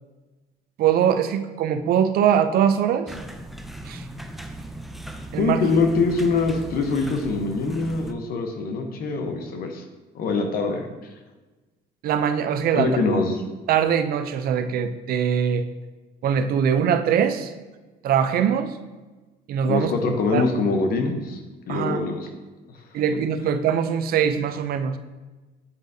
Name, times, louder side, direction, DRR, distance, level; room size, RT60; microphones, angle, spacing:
voice 1, 0.8-3.1 3.8-4.0 5.3-5.6 12.0-12.9 13.7-15.6 16.2-17.5 18.0-18.8 19.5-19.9 20.3-20.5 21.7-22.0 22.9-25.0, right 8 dB, 65° right, 10 dB, 0.5 m, -22 dB
sound 1, 3.1-8.1, right 1 dB, ahead, 0.4 m, -38 dB
voice 2, 5.4-9.8 10.1-10.9 12.7-13.4 19.6-21.4 21.7-22.3, left 3 dB, 60° left, 5 dB, 0.9 m, -23 dB
8.2 x 4.6 x 2.7 m, 1.2 s
cardioid pair, 110°, 17 cm